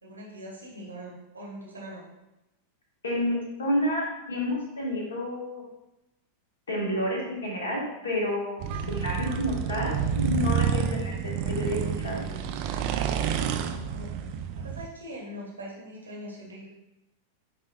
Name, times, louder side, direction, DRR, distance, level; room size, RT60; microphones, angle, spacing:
voice 1, 0.0-2.0 13.3-14.1 14.6-16.7, equal, 75° right, -3 dB, 1.1 m, -42 dB
voice 2, 3.0-5.6 6.7-12.2, left 1 dB, 70° left, -3 dB, 1.4 m, -30 dB
sound 1, 8.6-14.9, right 8 dB, 45° right, 0.4 m, -29 dB
7.9 x 2.9 x 2.3 m, 0.95 s
figure-of-eight pair, 90°, 0 cm